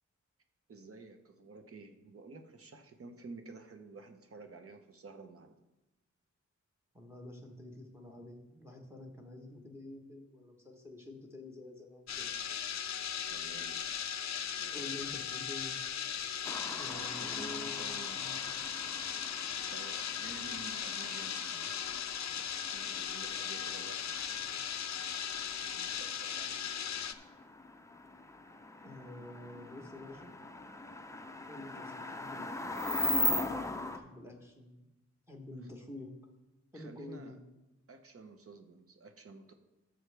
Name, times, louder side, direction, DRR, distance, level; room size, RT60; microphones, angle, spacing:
voice 1, 0.7-5.6 13.3-13.8 14.6-14.9 16.7-18.3 19.7-21.8 22.7-24.1 25.5-26.6 35.6-35.7 36.7-37.4 37.9-39.5, right 3 dB, 50° right, 6 dB, 0.9 m, -51 dB
voice 2, 6.9-12.3 14.7-15.8 16.8-18.6 24.2-24.6 28.8-30.3 31.5-33.6 33.9-34.9 35.3-36.1 36.7-37.4, left 2 dB, 10° right, 2 dB, 1.1 m, -48 dB
sound 1, 12.1-27.1, left 8 dB, 65° left, 0.5 m, -38 dB
sound 2, 16.4-34.0, left 2 dB, 10° left, 0.5 m, -40 dB
14.0 x 6.4 x 3.4 m, 1.0 s
wide cardioid pair, 155°, 30 cm